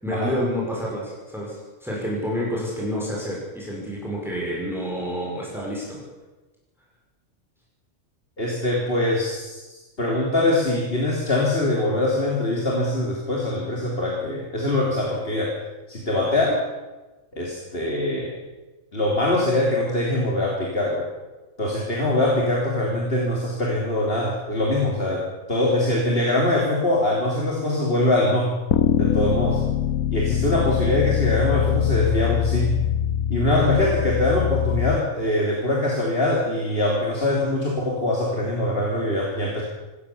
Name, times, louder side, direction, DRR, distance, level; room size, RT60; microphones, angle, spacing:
voice 1, 0.0-6.0, equal, ahead, -4 dB, 5.6 m, -29 dB
voice 2, 8.4-15.6 15.9-16.6 17.3-18.3 18.9-21.1 21.6-28.6 29.0-29.6 30.1-32.8 33.3-39.6, left 1 dB, 45° left, -2 dB, 3.5 m, -23 dB
sound 1, 28.7-35.0, left 9 dB, 75° left, 1.4 m, -23 dB
26.5 x 14.5 x 7.2 m, 1.2 s
omnidirectional pair, 1.5 m